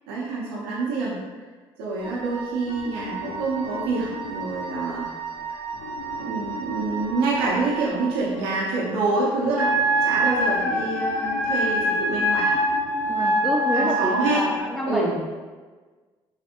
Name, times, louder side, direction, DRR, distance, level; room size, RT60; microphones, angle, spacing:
voice 1, 0.1-1.2 1.8-5.1 5.5-5.6 6.2-9.7 10.0-12.6 13.7-14.4 14.9-15.1, right 3 dB, 90° right, -5 dB, 0.7 m, -26 dB
Wind instrument woodwind instrument, 2.0-8.1, right 7 dB, 50° right, 0.6 m, -35 dB
sound 1, 2.7-14.6, left 5 dB, 85° left, 0.4 m, -40 dB
Wind instrument woodwind instrument 2, 9.5-14.4, right 1 dB, 55° left, 1.2 m, -23 dB
voice 2, 13.1-15.3, equal, ahead, -2 dB, 0.5 m, -28 dB
3.3 x 3.3 x 2.8 m, 1.4 s
hypercardioid pair, 60°, 12 cm